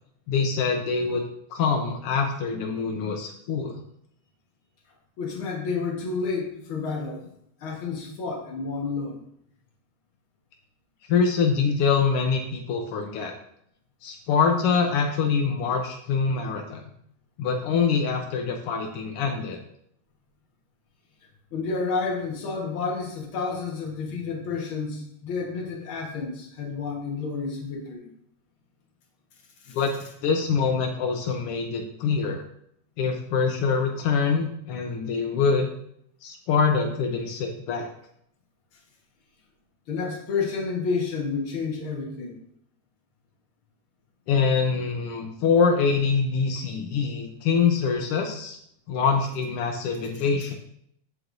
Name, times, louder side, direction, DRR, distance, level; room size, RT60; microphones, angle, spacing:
voice 1, 0.3-1.2 1.5-3.8 11.1-13.3 14.0-16.8 17.4-19.6 29.7-29.9 30.2-32.4 33.0-35.7 36.2-37.9 44.3-48.6 48.9-50.5, left 5 dB, 80° left, 3 dB, 1.3 m, -24 dB
voice 2, 5.2-7.3 7.6-9.2 21.5-28.1 29.6-29.8 39.9-42.4 50.2-50.3, left 4 dB, 50° left, 1 dB, 1.7 m, -30 dB
14.5 x 4.9 x 2.6 m, 0.70 s
omnidirectional pair, 3.5 m